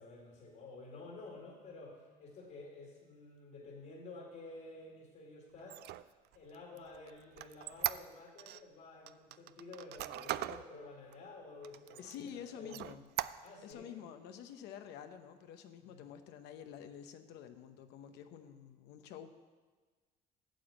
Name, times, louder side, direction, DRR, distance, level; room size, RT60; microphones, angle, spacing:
voice 1, 0.0-5.8 6.3-12.8 13.4-13.9 15.8-16.1, left 3 dB, 60° left, -1 dB, 2.1 m, -51 dB
Squeak, 5.6-8.6 9.1-10.6 11.1-11.2 11.6-12.3 12.7-13.7, right 15 dB, 75° right, 0.4 m, -40 dB
voice 2, 12.0-13.0 13.6-19.3, left 8 dB, 90° left, 8 dB, 0.8 m, -49 dB
9.1 x 7.1 x 7.8 m, 1.4 s
cardioid pair, 110°, 17 cm